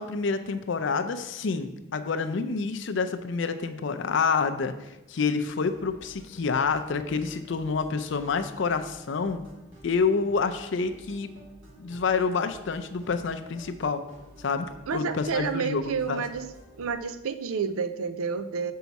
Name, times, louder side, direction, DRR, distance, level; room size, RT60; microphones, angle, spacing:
voice 1, 0.0-9.4 9.8-11.3 11.8-14.0 14.4-16.2, left 5 dB, 60° left, 8 dB, 0.5 m, -28 dB
sound 1, 5.6-16.9, equal, 70° right, 1.8 m, -52 dB
voice 2, 14.9-16.5 16.8-18.7, right 5 dB, 90° right, 11 dB, 0.4 m, -30 dB
6.9 x 4.7 x 4.0 m, 0.98 s
head